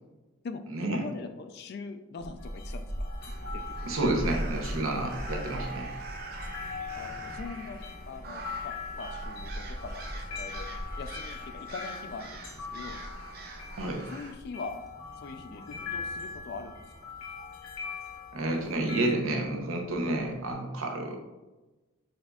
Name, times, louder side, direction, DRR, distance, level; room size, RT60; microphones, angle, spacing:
voice 1, 0.4-3.1 3.5-3.8 6.3-6.5 6.9-7.8 8.1-10.7 11.0-13.0 14.1-14.7 15.2-16.7, left 4 dB, 50° left, 8 dB, 0.3 m, -42 dB
Child speech kid speaking / Wind, 2.2-20.5, equal, ahead, 0.6 m, -42 dB
sound 1, 2.4-19.1, left 5 dB, 70° left, 0.8 m, -42 dB
sound 2, 3.2-14.3, right 3 dB, 45° right, 0.5 m, -46 dB
voice 2, 3.8-5.9 13.8-14.0 18.3-21.2, right 2 dB, 75° right, 2 dB, 0.7 m, -30 dB
6.3 x 2.6 x 2.3 m, 1.1 s
head